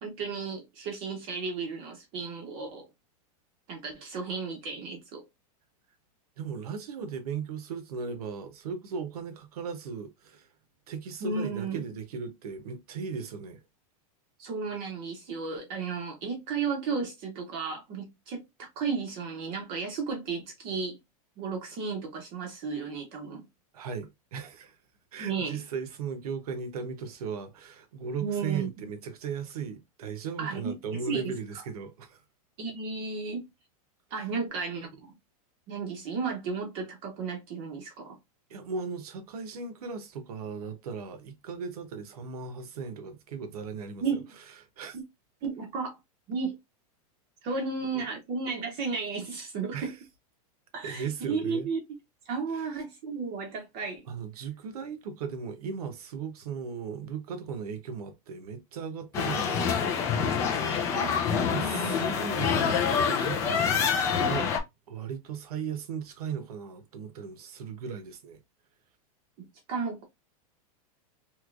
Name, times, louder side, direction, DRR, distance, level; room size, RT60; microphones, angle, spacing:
voice 1, 0.0-2.9 3.7-5.2 11.2-11.8 14.4-21.0 21.4-23.5 25.2-25.6 28.2-28.7 30.4-31.6 32.6-33.4 34.1-35.1 35.7-38.2 44.0-44.3 44.9-45.0 45.4-46.0 46.3-46.6 47.4-49.9 50.7-51.8 52.3-54.0 60.9-61.2 61.5-62.0 69.4-70.0, right 5 dB, 30° right, 0.7 m, -34 dB
voice 2, 6.4-10.5 10.9-13.6 23.7-24.8 25.1-32.2 38.5-44.2 44.8-45.0 47.9-48.1 49.7-49.9 50.8-51.7 52.5-52.7 54.1-59.9 61.4-63.7 64.2-64.5 64.9-68.4, right 6 dB, 75° right, 0.9 m, -37 dB
sound 1, 59.1-64.6, left 6 dB, 15° left, 0.3 m, -26 dB
3.2 x 2.9 x 2.4 m
supercardioid pair, 175°, 19 cm